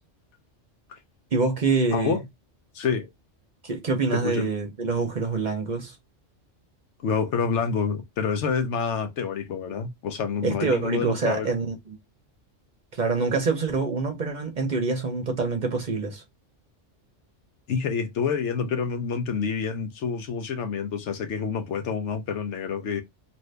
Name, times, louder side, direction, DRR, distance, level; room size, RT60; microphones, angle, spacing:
voice 1, 1.3-2.2 3.6-6.0 10.4-12.0 12.9-16.2, right 4 dB, 45° right, 0.7 m, -26 dB
voice 2, 1.9-2.2 2.7-3.1 4.1-4.5 7.0-11.5 17.7-23.0, left 6 dB, 75° left, 1.0 m, -28 dB
2.6 x 2.6 x 3.3 m
omnidirectional pair, 1.2 m